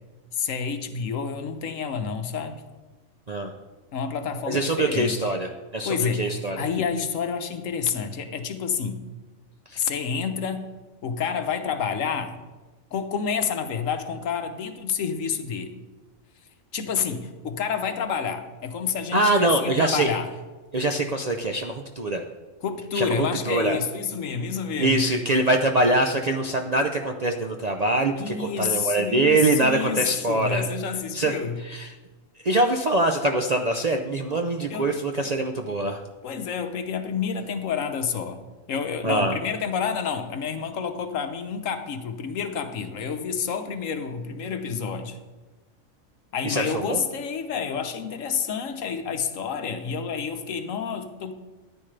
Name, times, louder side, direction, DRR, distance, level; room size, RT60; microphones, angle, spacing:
voice 1, 0.3-2.6 3.9-5.3 5.8-9.1 9.8-10.7 11.0-12.4 12.9-15.8 16.7-20.3 22.6-25.0 28.2-31.6 34.7-34.9 35.3-35.4 36.2-38.4 38.7-45.2 46.3-51.3, left 6 dB, 70° left, 8 dB, 1.2 m, -29 dB
voice 2, 4.5-6.7 9.7-9.8 19.1-20.1 20.7-22.2 22.9-23.8 24.8-30.7 31.1-31.9 32.4-36.0 39.0-39.4 46.4-47.0, right 2 dB, 45° right, 3 dB, 0.5 m, -24 dB
13.5 x 9.9 x 3.3 m, 1.3 s
omnidirectional pair, 1.4 m